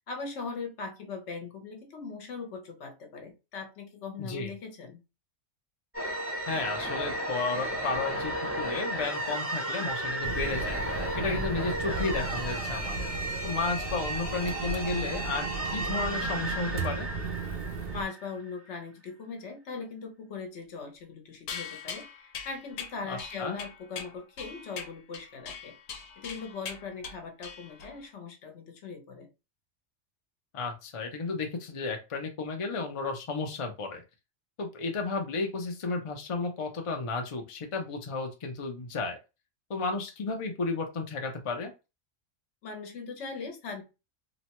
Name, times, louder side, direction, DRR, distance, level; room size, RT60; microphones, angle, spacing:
voice 1, 0.0-5.0 17.9-25.8 26.2-29.3 42.6-43.8, left 4 dB, 65° left, 4 dB, 1.0 m, -40 dB
voice 2, 4.2-4.5 6.5-10.8 11.2-13.0 13.4-17.1 23.0-23.6 30.5-34.0 34.6-39.2 39.7-41.7, left 3 dB, 45° left, 4 dB, 0.4 m, -33 dB
sound 1, 5.9-18.5, right 1 dB, 15° right, 0.6 m, -34 dB
sound 2, 10.2-18.0, right 4 dB, 65° right, 0.7 m, -36 dB
sound 3, 21.5-28.0, left 6 dB, 90° left, 1.0 m, -42 dB
2.9 x 2.1 x 2.8 m, 0.27 s
omnidirectional pair, 1.3 m